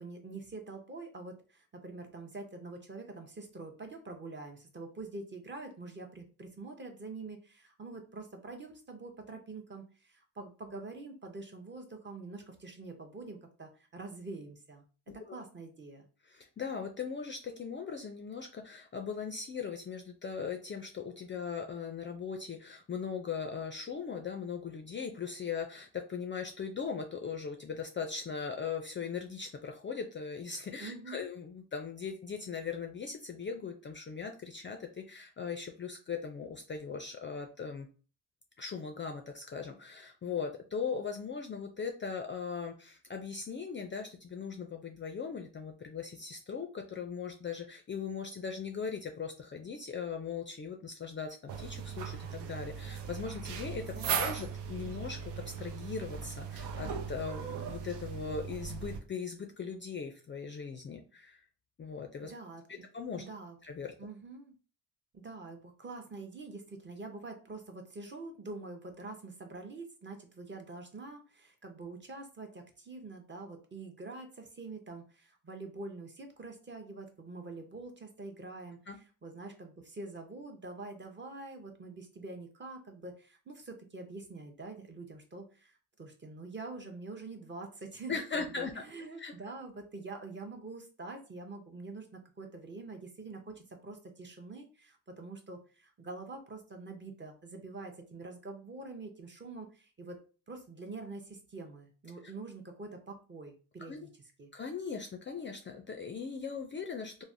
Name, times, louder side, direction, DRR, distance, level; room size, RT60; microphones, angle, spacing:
voice 1, 0.0-14.8 15.1-16.1 30.8-31.3 53.9-54.4 62.3-62.6 63.2-63.6 64.0-64.5 65.1-100.2 100.5-104.1 104.4-104.5, right 3 dB, 30° right, 3 dB, 0.7 m, -45 dB
voice 2, 16.2-37.9 38.6-55.3 55.6-61.4 61.8-62.3 62.7-63.2 63.6-63.9 78.9-79.0 88.1-88.7 89.2-89.3 103.9-104.1 104.5-107.2, left 6 dB, 30° left, 3 dB, 0.4 m, -39 dB
sound 1, 51.5-59.0, right 7 dB, 85° right, 0.6 m, -38 dB
3.2 x 2.0 x 2.5 m, 0.36 s
cardioid pair, 85°, 40 cm